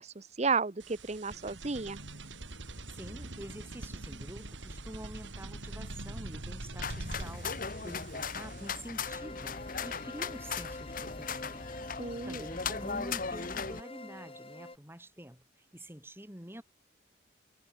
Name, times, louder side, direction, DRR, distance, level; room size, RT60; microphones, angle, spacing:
voice 1, 0.0-2.0 12.0-12.5, right 4 dB, 35° right, 0.8 m, -33 dB
sound 1, 0.8-9.1, right 2 dB, 80° right, 3.2 m, -43 dB
voice 2, 2.9-11.7 12.0-15.4 15.7-16.6, equal, 10° right, 6.4 m, -47 dB
sound 2, 6.8-13.8, left 5 dB, 45° left, 1.5 m, -38 dB
sound 3, 9.1-14.8, left 2 dB, 30° left, 4.1 m, -46 dB
head